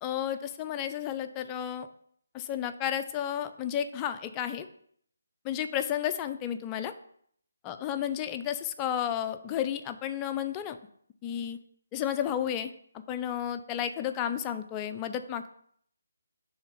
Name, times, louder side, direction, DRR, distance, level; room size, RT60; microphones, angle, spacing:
voice 1, 0.0-1.9 2.3-4.7 5.4-6.9 7.7-10.8 11.2-11.6 11.9-12.7 13.1-15.5, left 10 dB, 20° left, 9 dB, 0.4 m, -32 dB
6.2 x 3.4 x 5.0 m, 0.65 s
figure-of-eight pair, 155°, 0 cm